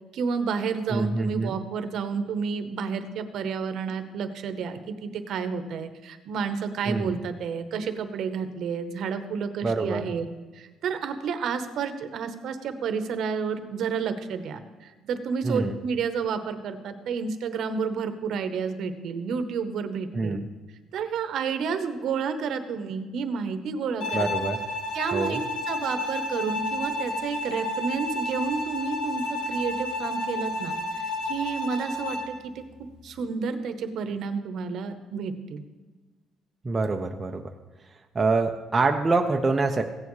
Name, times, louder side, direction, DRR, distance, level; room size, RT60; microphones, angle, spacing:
voice 1, 0.1-10.3 10.5-20.4 20.9-24.3 24.9-25.4 25.7-32.6 33.0-35.6, right 5 dB, 55° right, 9 dB, 0.9 m, -30 dB
voice 2, 0.9-1.6 6.9-7.2 9.6-10.0 15.4-15.7 20.1-20.5 24.1-24.6 25.1-25.4 36.6-37.5 38.1-39.8, right 3 dB, 20° right, 3 dB, 0.5 m, -25 dB
Bowed string instrument, 24.0-32.4, left 1 dB, 90° left, 2.1 m, -31 dB
16.0 x 9.5 x 3.1 m, 1.3 s
cardioid pair, 155°, 0 cm